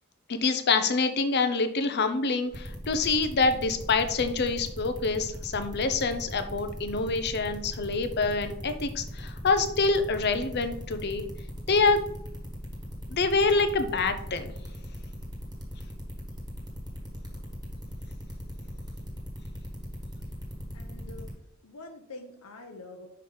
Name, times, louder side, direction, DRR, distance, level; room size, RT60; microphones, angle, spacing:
voice 1, 0.3-11.2 11.7-12.0 13.1-14.5, left 4 dB, 50° left, 9 dB, 0.6 m, -26 dB
sound 1, 2.5-21.3, equal, 20° right, 1.4 m, -39 dB
voice 2, 20.7-21.3 21.6-23.1, left 2 dB, 90° left, 3 dB, 0.8 m, -45 dB
5.7 x 4.7 x 3.8 m, 0.76 s
head